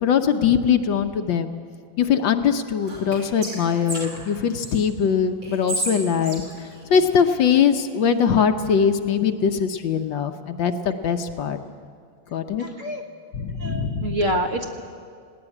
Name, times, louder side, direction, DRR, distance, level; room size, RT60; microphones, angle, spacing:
voice 1, 0.0-1.6 2.0-6.4 6.9-11.6 12.3-12.6 13.3-14.1, left 7 dB, 70° left, 7 dB, 1.5 m, -21 dB
Whispering, 2.8-4.8 5.4-7.6, right 1 dB, 65° right, 6.2 m, -33 dB
voice 2, 12.6-13.0 13.6-14.8, right 1 dB, 40° right, 3 dB, 1.7 m, -27 dB
19.5 x 17.0 x 9.9 m, 2.1 s
omnidirectional pair, 2.2 m